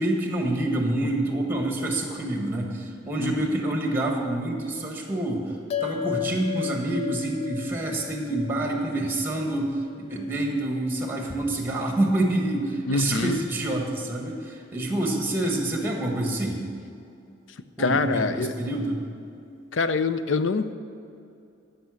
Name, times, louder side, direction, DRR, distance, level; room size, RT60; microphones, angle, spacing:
voice 1, 0.0-5.5 5.8-16.6 17.8-19.0, right 1 dB, 10° right, 1 dB, 1.5 m, -27 dB
voice 2, 3.2-3.5 12.9-13.4 17.8-18.5 19.7-20.7, left 4 dB, 80° left, 11 dB, 0.5 m, -25 dB
sound 1, 5.7-10.4, left 11 dB, 30° left, 0.4 m, -35 dB
13.5 x 5.9 x 6.4 m, 2.6 s
head